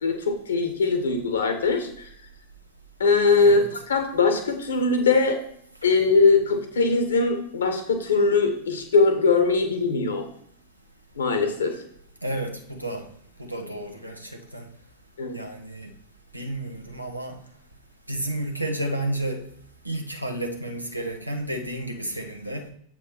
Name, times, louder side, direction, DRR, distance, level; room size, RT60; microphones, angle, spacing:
voice 1, 0.0-2.1 3.0-5.4 5.8-10.2 11.2-11.8 15.2-15.4, left 4 dB, 70° left, 6 dB, 1.3 m, -21 dB
voice 2, 3.4-3.7 12.2-13.1 13.4-14.7 15.3-15.9 16.3-17.4 18.1-19.5 19.8-22.7, right 1 dB, 90° right, 4 dB, 1.1 m, -31 dB
7.5 x 4.5 x 4.5 m, 0.69 s
figure-of-eight pair, 90°, 0 cm